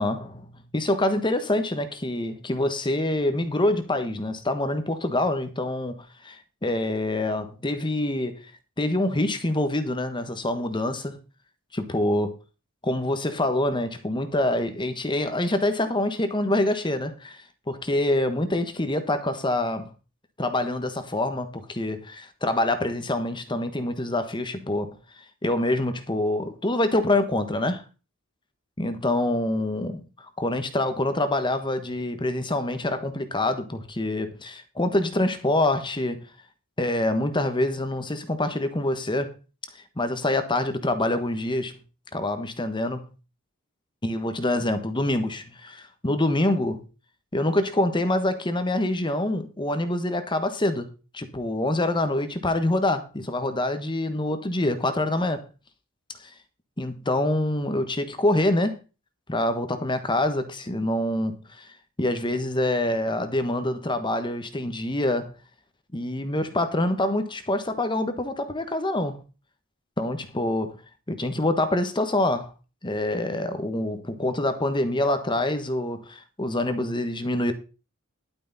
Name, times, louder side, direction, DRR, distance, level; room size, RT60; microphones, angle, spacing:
voice 1, 0.0-6.0 6.2-8.4 8.8-11.2 11.7-12.3 12.8-19.9 20.4-25.0 25.4-27.8 28.8-30.0 30.4-36.2 36.8-39.3 39.7-41.7 42.1-43.0 44.0-46.8 47.3-50.9 51.1-55.4 56.2-56.3 56.8-58.8 59.3-61.7 62.0-65.3 65.9-69.2 70.0-70.8 71.1-72.5 72.8-77.5, left 1 dB, 20° left, 1.3 m, -26 dB
11.5 x 9.4 x 4.1 m
head